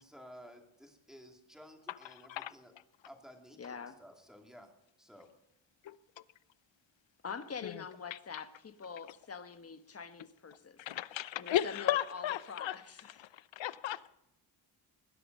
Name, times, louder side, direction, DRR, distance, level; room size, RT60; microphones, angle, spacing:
voice 1, 0.0-2.7 3.1-4.7 5.0-5.3, equal, ahead, 2.5 m, -54 dB
voice 2, 1.9-2.5 5.8-6.0 7.6-7.8 8.1-8.4 10.8-12.8 13.3-14.1, left 12 dB, 70° left, 0.8 m, -35 dB
voice 3, 3.5-4.0 7.2-10.8 11.3-13.3, left 6 dB, 30° left, 1.2 m, -45 dB
20.5 x 11.0 x 5.3 m
wide cardioid pair, 150°, 47 cm